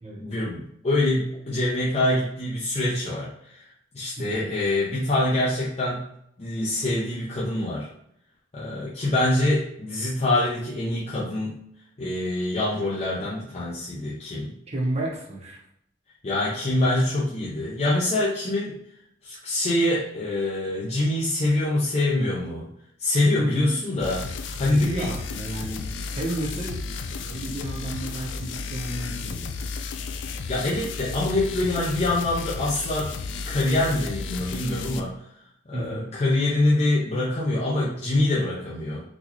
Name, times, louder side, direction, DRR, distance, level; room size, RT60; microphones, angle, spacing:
voice 1, 0.2-3.7 3.9-6.0 6.4-7.9 8.5-11.7 12.0-14.6 16.2-18.8 19.2-22.7 23.0-24.2 24.6-25.1 30.5-33.1 33.5-35.2 35.7-39.0, left 1 dB, 35° left, -7 dB, 0.6 m, -25 dB
voice 2, 4.2-4.5 14.7-15.6 23.4-23.8 24.7-26.8 27.2-29.8 35.7-36.1, right 1 dB, 35° right, -2 dB, 0.8 m, -32 dB
sound 1, 24.0-35.0, left 4 dB, 80° left, 0.3 m, -33 dB
4.0 x 2.3 x 3.0 m, 0.73 s
head